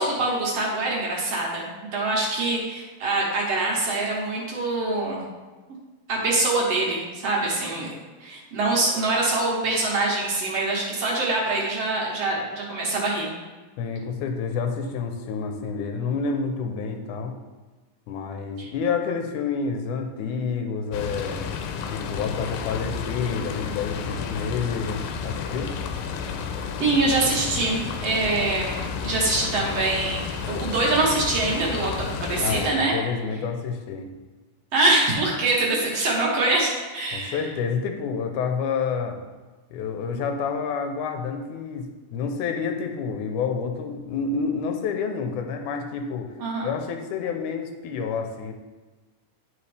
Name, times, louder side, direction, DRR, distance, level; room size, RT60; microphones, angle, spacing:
voice 1, 0.0-1.7 1.9-5.2 6.1-7.9 8.2-13.3 18.6-18.7 26.8-32.9 34.7-37.4 46.4-46.7, right 2 dB, 55° right, -3 dB, 2.0 m, -24 dB
voice 2, 13.8-17.4 18.1-21.4 21.9-25.7 32.4-34.1 37.1-39.2 39.7-46.3 46.6-48.5, left 5 dB, 75° left, 5 dB, 2.1 m, -29 dB
sound 1, 20.9-32.7, left 6 dB, 90° left, 2.3 m, -31 dB
11.5 x 4.9 x 3.4 m, 1.3 s
omnidirectional pair, 4.0 m